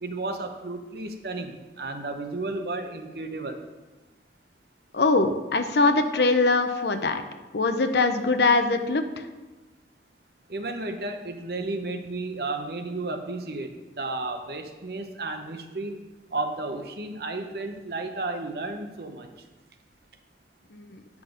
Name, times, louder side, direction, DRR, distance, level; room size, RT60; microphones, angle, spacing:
voice 1, 0.0-3.6 10.5-16.0 16.3-19.3, right 2 dB, 60° right, 6 dB, 0.8 m, -33 dB
voice 2, 4.9-7.2 7.5-9.3 20.7-21.0, left 3 dB, 70° left, 8 dB, 0.7 m, -22 dB
8.6 x 6.0 x 5.1 m, 1.2 s
head